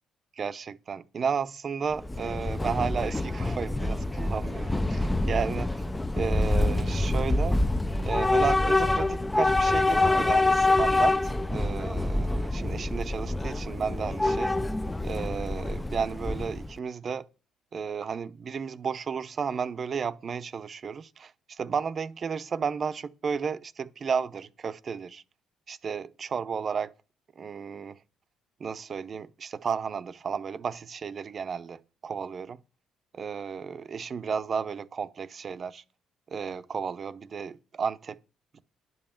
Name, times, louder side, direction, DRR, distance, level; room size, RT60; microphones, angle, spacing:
voice 1, 0.4-5.9 6.1-7.6 8.0-14.5 15.0-17.3 17.7-25.2 25.7-26.9 27.4-28.0 28.6-32.6 33.1-35.8 36.3-38.2, right 6 dB, 40° right, 0.7 m, -33 dB
Train / Subway metro underground, 1.9-16.8, left 2 dB, 10° left, 0.4 m, -26 dB
11.0 x 5.5 x 7.2 m
cardioid pair, 100°, 0 cm